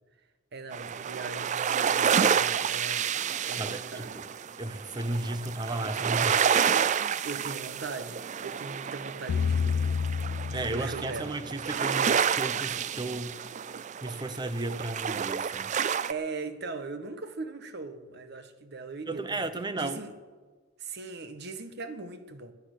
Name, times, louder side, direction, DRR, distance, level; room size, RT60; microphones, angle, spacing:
voice 1, 0.5-3.1 3.5-4.2 7.2-9.8 10.5-11.4 15.7-19.5 19.8-20.1 20.8-22.5, right 3 dB, 60° right, 1.2 m, -40 dB
sound 1, 0.7-16.1, right 7 dB, 40° right, 0.4 m, -29 dB
voice 2, 3.4-4.3 4.6-6.4 6.8-6.9 10.5-13.4 14.0-15.7 19.1-20.0, right 2 dB, 25° right, 0.8 m, -34 dB
sound 2, 9.3-11.5, left 6 dB, 90° left, 0.3 m, -29 dB
20.0 x 8.7 x 6.5 m
head